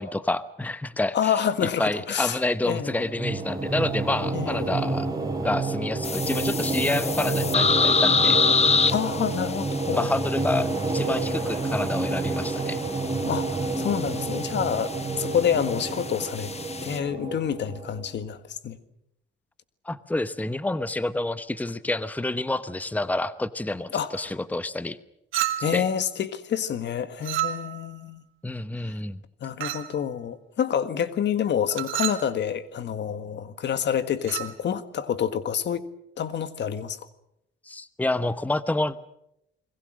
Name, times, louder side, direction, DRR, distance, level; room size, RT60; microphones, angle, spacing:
voice 1, 0.0-1.3 1.8-5.1 5.4-8.4 9.9-12.8 19.8-25.0 25.7-25.8 28.4-29.2 37.7-38.9, left 2 dB, 10° left, 1.0 m, -28 dB
voice 2, 1.1-3.0 4.3-4.7 8.9-10.1 13.2-16.5 16.8-18.8 23.9-24.3 25.6-28.2 28.8-28.9 29.4-35.9 36.2-37.0, left 8 dB, 65° left, 1.7 m, -28 dB
sound 1, 2.8-18.1, right 3 dB, 20° right, 6.5 m, -29 dB
sound 2, 6.0-17.0, left 5 dB, 30° left, 1.2 m, -28 dB
Chink clink, 25.3-25.9 27.2-27.9 29.6-30.0 31.7-32.3 34.2-34.5, right 12 dB, 80° right, 2.3 m, -30 dB
28.5 x 22.0 x 6.4 m
cardioid pair, 90°, 20 cm